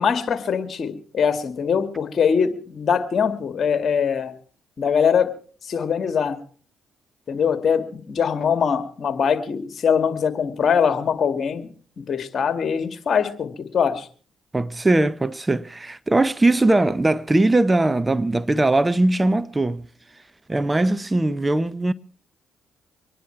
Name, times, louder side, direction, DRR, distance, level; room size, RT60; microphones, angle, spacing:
voice 1, 0.0-4.3 4.8-5.3 5.6-6.4 7.3-11.7 12.1-14.1, left 7 dB, 55° left, 2.1 m, -22 dB
voice 2, 14.5-19.9 20.5-21.9, right 2 dB, 20° right, 0.6 m, -20 dB
25.0 x 10.5 x 4.6 m
supercardioid pair, 55°, 0 cm